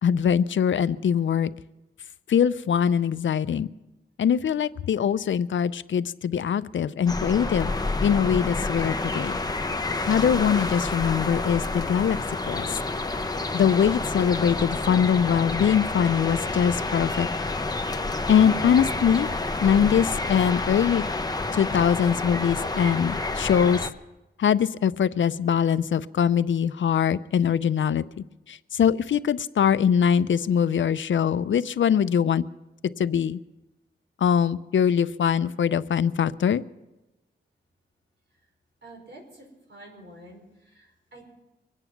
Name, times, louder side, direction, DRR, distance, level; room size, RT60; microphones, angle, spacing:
voice 1, 0.0-1.5 2.3-3.7 4.2-7.7 8.0-9.4 10.1-12.2 12.5-12.8 13.5-17.3 18.3-19.3 19.6-21.0 21.5-23.8 24.4-28.0 28.5-32.4 33.0-33.4 34.2-36.6, left 8 dB, 80° left, 15 dB, 0.5 m, -22 dB
sound 1, 7.1-23.9, left 2 dB, 20° left, 0.8 m, -29 dB
voice 2, 38.8-41.4, right 1 dB, 70° right, 0 dB, 5.0 m, -48 dB
24.0 x 9.0 x 5.9 m, 1.0 s
wide cardioid pair, 105°, 19 cm